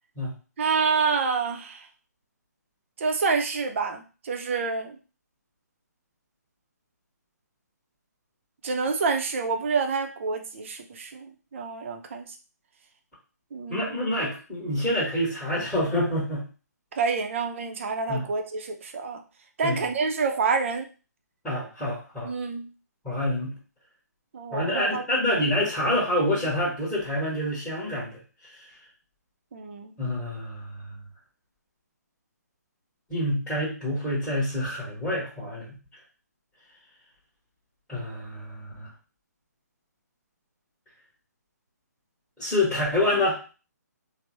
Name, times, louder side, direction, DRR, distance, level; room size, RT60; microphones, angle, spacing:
voice 1, 0.6-1.9 3.0-5.0 8.6-12.3 13.5-14.0 17.0-19.2 19.6-20.9 22.2-22.7 24.3-25.0 29.5-29.9, right 4 dB, 45° right, 5 dB, 0.5 m, -28 dB
voice 2, 13.7-16.5 18.1-18.2 19.6-19.8 21.4-22.3 23.0-23.5 24.5-28.2 30.0-31.0 33.1-35.7 37.9-38.9 42.4-43.4, left 1 dB, ahead, -8 dB, 1.1 m, -27 dB
3.2 x 2.0 x 3.0 m, 0.34 s
hypercardioid pair, 150°, 10 cm